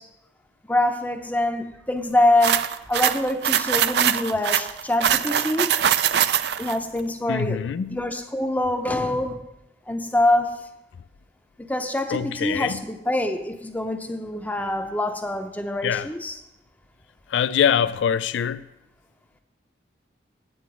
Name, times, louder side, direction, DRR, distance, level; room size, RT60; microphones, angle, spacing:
voice 1, 0.7-5.8 6.6-7.6 7.9-9.4 9.9-10.6 11.6-16.4, left 1 dB, 10° left, 0.6 m, -25 dB
sound 1, 2.4-6.8, right 9 dB, 65° right, 0.4 m, -22 dB
voice 2, 7.3-8.0 12.1-12.8 15.8-16.1 17.3-18.6, left 8 dB, 90° left, 0.3 m, -23 dB
9.5 x 8.6 x 4.8 m
head